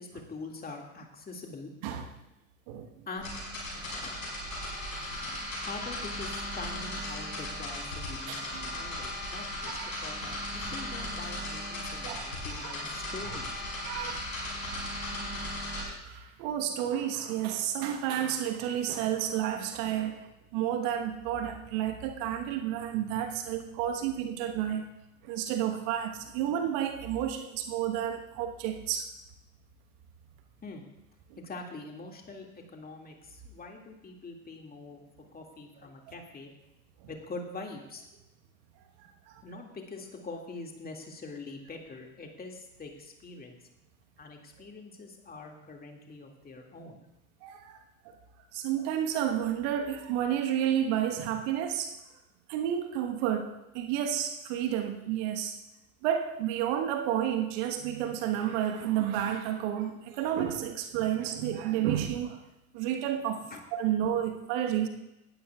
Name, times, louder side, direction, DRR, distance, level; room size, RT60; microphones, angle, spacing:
voice 1, 0.0-1.7 3.1-3.4 3.7-4.2 5.6-8.4 8.7-13.7 30.6-30.8 31.4-36.5 37.1-38.0 39.4-43.6 44.2-47.0 63.3-63.6, left 3 dB, 20° left, 1 dB, 2.2 m, -44 dB
voice 2, 2.7-3.1 8.3-8.8 9.6-9.9 10.6-10.7 12.0-12.7 13.2-13.4 13.8-14.3 15.1-15.5 16.0-24.9 25.2-29.2 37.0-37.1 39.0-39.4 47.4-48.2 48.5-52.0 52.5-55.6 56.0-62.4 62.7-63.4 63.7-64.9, right 10 dB, 55° right, 5 dB, 1.3 m, -31 dB
sound 1, 3.2-15.8, left 1 dB, 85° left, 5.7 m, -37 dB
19.0 x 13.0 x 2.4 m, 0.89 s
figure-of-eight pair, 70°, 41 cm